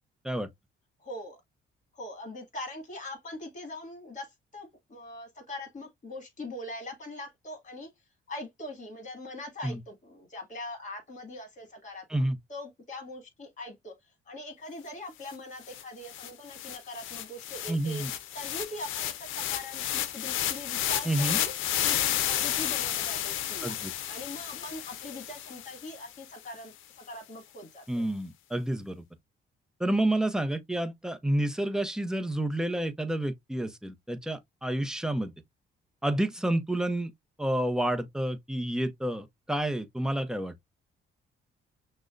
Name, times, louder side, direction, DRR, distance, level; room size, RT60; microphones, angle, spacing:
voice 1, 1.0-1.4 1.9-7.9 8.3-13.9 14.3-18.0 18.3-21.5 21.8-23.7 24.1-28.0, left 1 dB, 40° left, 1.9 m, -42 dB
Noise Riser, 15.3-15.4 15.7-26.0, left 11 dB, 85° left, 0.6 m, -32 dB
voice 2, 17.7-18.1 21.0-21.4 23.6-23.9 27.9-29.0 29.8-35.3 36.0-37.1 37.4-40.5, right 1 dB, 5° right, 0.6 m, -29 dB
6.0 x 2.2 x 2.4 m
cardioid pair, 90°, 20 cm